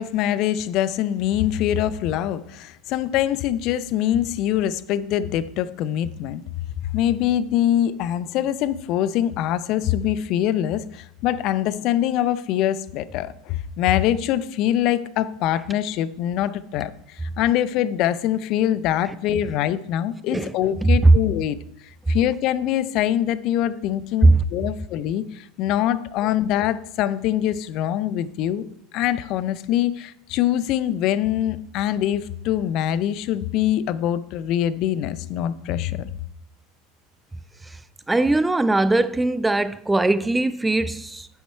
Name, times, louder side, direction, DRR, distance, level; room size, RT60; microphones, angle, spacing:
voice 1, 0.0-6.4 6.9-21.6 22.1-28.7 28.9-36.1, left 11 dB, 55° left, 0.5 m, -24 dB
voice 2, 20.8-21.1 22.1-22.2 24.2-24.4 37.6-37.8 38.1-41.3, right 2 dB, 10° right, 0.4 m, -19 dB
7.3 x 7.2 x 4.4 m
hypercardioid pair, 80°, 0 cm